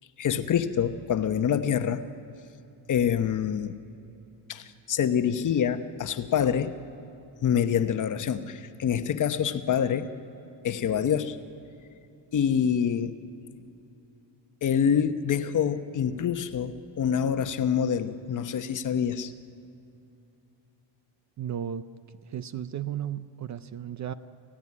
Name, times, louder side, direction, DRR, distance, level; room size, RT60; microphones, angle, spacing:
voice 1, 0.2-2.0 2.9-3.8 4.5-6.7 7.4-10.1 10.6-11.4 12.3-13.1 14.6-19.3, left 8 dB, 40° left, 9 dB, 0.9 m, -26 dB
voice 2, 21.4-21.8 22.2-24.1, right 10 dB, 40° right, 13 dB, 0.5 m, -34 dB
27.5 x 16.0 x 9.7 m, 2.8 s
cardioid pair, 175°, 47 cm